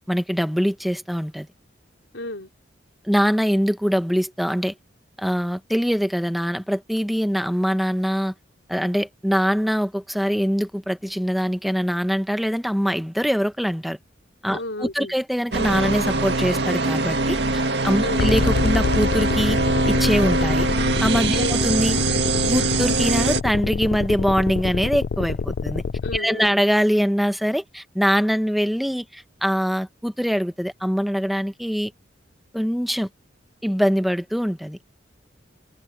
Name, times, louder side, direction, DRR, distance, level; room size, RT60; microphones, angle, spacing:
voice 1, 0.1-1.5 3.0-4.7 5.2-8.3 8.7-14.0 14.4-14.6 14.9-19.6 19.9-20.7 21.0-22.0 22.5-25.8 26.1-31.9 32.5-33.1 33.6-34.8, equal, ahead, 1.0 m, -23 dB
voice 2, 2.1-2.5 14.5-15.1 18.0-18.3 21.3-21.5 26.0-26.5, left 1 dB, 85° left, 4.0 m, -32 dB
sound 1, 15.5-23.4, right 3 dB, 60° right, 2.1 m, -22 dB
sound 2, 18.2-26.2, left 5 dB, 60° left, 0.4 m, -26 dB
head